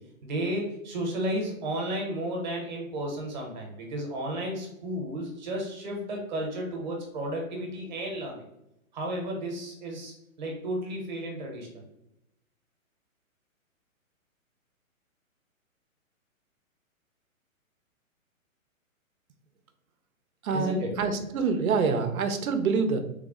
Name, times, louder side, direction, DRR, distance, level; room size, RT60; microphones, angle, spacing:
voice 1, 0.2-8.4 8.9-11.8 20.5-20.9, right 1 dB, 35° right, 0 dB, 0.9 m, -33 dB
voice 2, 20.4-23.0, right 5 dB, 85° right, 7 dB, 0.7 m, -26 dB
3.3 x 2.0 x 3.6 m, 0.82 s
hypercardioid pair, 160°, 41 cm